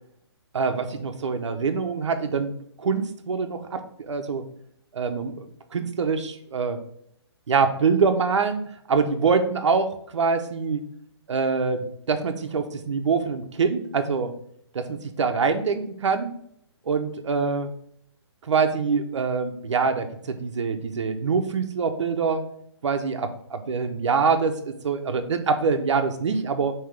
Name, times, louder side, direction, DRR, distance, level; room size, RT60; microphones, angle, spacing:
voice 1, 0.5-2.5 2.8-4.4 4.9-6.8 7.5-8.6 8.9-10.8 11.3-14.4 14.7-16.3 16.9-17.7 18.5-22.5 22.8-26.7, right 5 dB, 85° right, 7 dB, 0.7 m, -24 dB
5.7 x 2.9 x 3.3 m, 0.68 s
hypercardioid pair, 175°, 15 cm